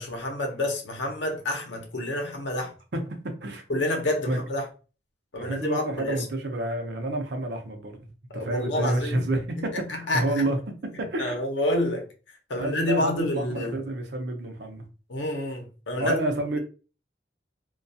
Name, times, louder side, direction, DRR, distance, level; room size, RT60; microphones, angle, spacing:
voice 1, 0.0-2.7 3.7-4.7 5.3-6.3 8.3-9.2 9.7-10.5 10.9-12.1 12.5-13.8 15.1-16.2, left 1 dB, 75° left, 0.7 m, -28 dB
voice 2, 2.9-3.6 4.3-4.4 5.4-8.0 8.3-10.6 11.0-11.4 12.6-14.8 16.0-16.6, right 1 dB, 60° right, 0.6 m, -29 dB
2.3 x 2.3 x 2.6 m
head